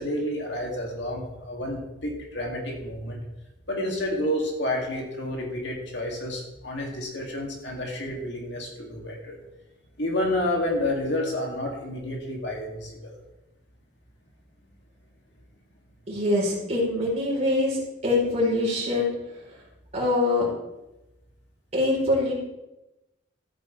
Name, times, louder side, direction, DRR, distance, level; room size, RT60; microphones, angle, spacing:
voice 1, 0.0-3.2 3.7-9.4 10.0-13.2, left 1 dB, 70° left, -1 dB, 2.7 m, -30 dB
voice 2, 16.1-19.1 19.9-20.5 21.7-22.3, left 2 dB, 35° right, -3 dB, 4.1 m, -24 dB
13.0 x 9.2 x 3.4 m, 0.97 s
head